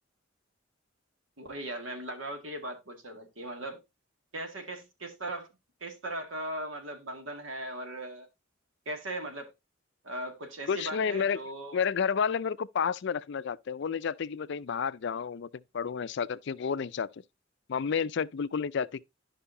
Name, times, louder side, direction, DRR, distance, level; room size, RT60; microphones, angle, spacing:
voice 1, 1.4-3.8 4.3-5.5 5.8-8.3 8.9-9.5 10.0-11.8, right 1 dB, 80° right, 2.1 m, -38 dB
voice 2, 10.7-11.4 11.7-17.2 17.7-19.0, left 6 dB, 60° left, 0.4 m, -31 dB
11.5 x 5.5 x 2.7 m
head